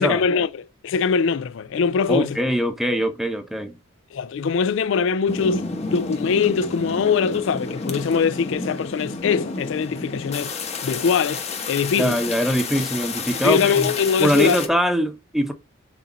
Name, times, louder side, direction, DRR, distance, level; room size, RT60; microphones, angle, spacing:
voice 1, 0.0-2.4 4.1-5.6 5.9-12.2 13.4-14.6, left 6 dB, 65° left, 0.3 m, -22 dB
voice 2, 2.1-3.8 12.0-13.9 14.2-15.5, equal, ahead, 0.8 m, -22 dB
sound 1, 5.3-14.7, left 3 dB, 30° left, 1.0 m, -30 dB
6.2 x 4.1 x 4.1 m
head